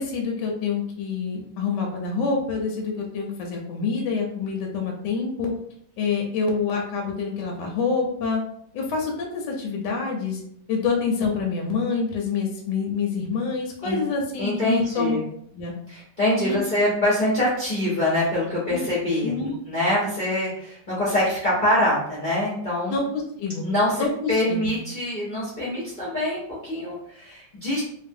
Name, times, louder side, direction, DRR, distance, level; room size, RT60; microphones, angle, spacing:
voice 1, 0.0-5.5 6.0-8.4 8.7-10.4 10.7-15.2 15.5-15.7 16.4-16.6 18.7-18.9 19.2-19.6 22.9-23.6 24.0-24.7, left 5 dB, 75° left, 0 dB, 1.1 m, -27 dB
voice 2, 14.4-15.2 15.9-23.0 23.6-27.8, left 1 dB, 55° left, -8 dB, 0.5 m, -24 dB
3.2 x 2.1 x 2.6 m, 0.67 s
omnidirectional pair, 2.1 m